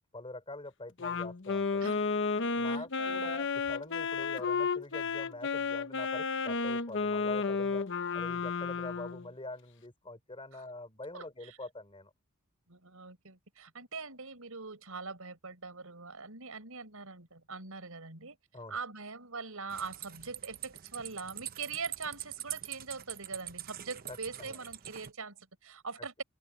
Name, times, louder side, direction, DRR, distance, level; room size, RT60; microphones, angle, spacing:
voice 1, 0.0-1.9 2.5-7.8 8.1-12.1 18.5-18.8 24.1-24.6, left 2 dB, 25° left, 4.0 m, -45 dB
Wind instrument woodwind instrument, 1.0-9.3, left 4 dB, 60° left, 1.0 m, -32 dB
voice 2, 2.7-3.4 11.1-11.6 12.7-18.4 18.7-26.2, right 4 dB, 80° right, 4.7 m, -43 dB
sound 1, 19.7-25.1, right 12 dB, 45° right, 0.8 m, -44 dB
head